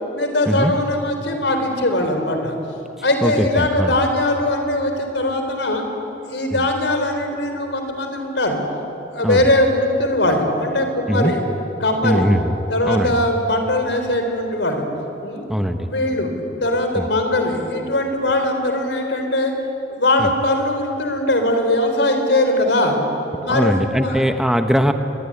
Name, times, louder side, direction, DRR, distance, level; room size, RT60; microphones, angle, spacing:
voice 1, 0.1-2.6 3.0-5.8 6.3-8.6 9.1-11.4 11.8-12.3 12.7-14.9 15.2-15.5 15.8-16.3 16.6-19.5 19.9-23.0 23.4-24.2, left 1 dB, 75° left, 5 dB, 3.9 m, -20 dB
voice 2, 3.2-3.9 6.5-6.7 9.2-9.5 11.1-11.3 12.0-12.5 12.8-13.2 15.5-15.9 16.9-17.1 20.2-20.3 23.5-24.9, equal, ahead, 7 dB, 0.9 m, -20 dB
25.0 x 21.0 x 10.0 m, 2.9 s
head